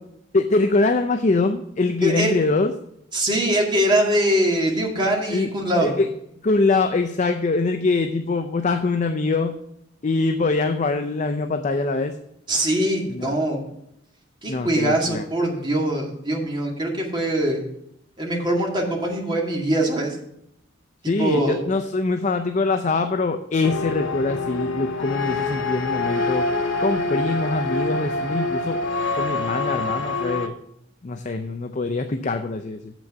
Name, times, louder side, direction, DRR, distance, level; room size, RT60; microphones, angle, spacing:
voice 1, 0.3-2.7 5.3-5.5 5.8-6.1 6.4-9.6 10.0-12.2 13.1-13.3 14.5-15.2 21.1-26.5 26.8-28.8 29.1-30.5 31.0-32.9, left 3 dB, 40° left, 6 dB, 0.5 m, -23 dB
voice 2, 2.0-2.3 3.1-5.9 12.5-13.6 14.4-17.6 18.2-20.2 21.2-21.6, right 1 dB, 25° right, -1 dB, 2.1 m, -22 dB
sound 1, 23.6-30.5, left 3 dB, 90° left, 0.9 m, -26 dB
7.4 x 6.1 x 6.6 m, 0.75 s
head